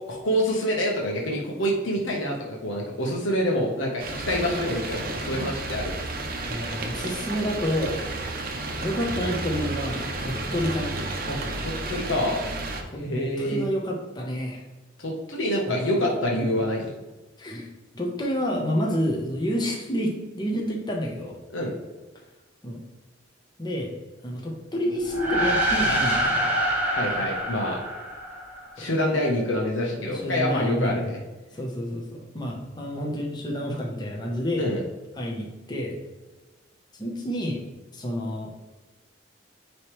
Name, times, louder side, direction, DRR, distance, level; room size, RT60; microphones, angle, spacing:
voice 1, 0.1-5.9 11.3-12.4 13.0-13.7 15.0-16.9 21.5-21.7 26.9-27.8 28.8-31.2 34.6-34.8, equal, 85° left, -1 dB, 1.2 m, -26 dB
sound 1, 4.0-12.8, right 2 dB, 50° right, 0.8 m, -32 dB
voice 2, 6.5-8.0 8.8-11.0 12.9-13.0 13.4-14.6 15.7-15.9 16.3-16.5 17.4-21.4 22.6-22.8 23.6-23.9 24.2-26.6 28.8-28.9 30.0-31.1 31.5-34.7 35.2-36.0 36.9-37.6 37.9-38.5, equal, 20° left, -1 dB, 1.0 m, -29 dB
sound 2, 25.0-28.7, right 1 dB, 10° right, 1.0 m, -25 dB
9.3 x 3.2 x 3.2 m, 1.2 s
head